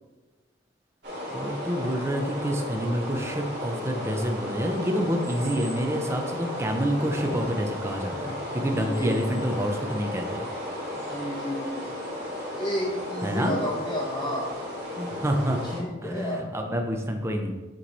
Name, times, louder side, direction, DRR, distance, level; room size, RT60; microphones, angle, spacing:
sound 1, 1.0-15.8, left 1 dB, 60° right, 2.0 m, -34 dB
voice 1, 1.3-10.4 13.2-13.6 15.1-15.6 16.0-17.5, equal, 15° right, 3 dB, 0.6 m, -28 dB
voice 2, 8.1-9.2 11.0-11.8 12.5-14.5 15.0-15.1 15.7-16.4, equal, 20° left, -5 dB, 0.8 m, -32 dB
8.9 x 3.1 x 4.1 m, 1.2 s
head